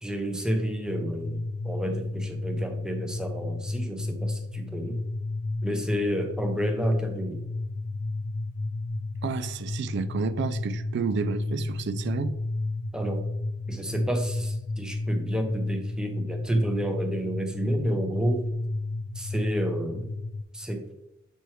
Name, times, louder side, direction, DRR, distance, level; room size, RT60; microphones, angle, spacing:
voice 1, 0.0-5.0 5.6-7.4 12.9-13.2 13.7-18.5 19.2-20.1 20.5-20.8, right 1 dB, 5° right, 0.6 m, -30 dB
sound 1, 0.9-20.4, left 2 dB, 80° left, 0.5 m, -32 dB
voice 2, 9.2-12.3, right 5 dB, 60° right, 0.4 m, -30 dB
6.8 x 4.4 x 3.1 m
head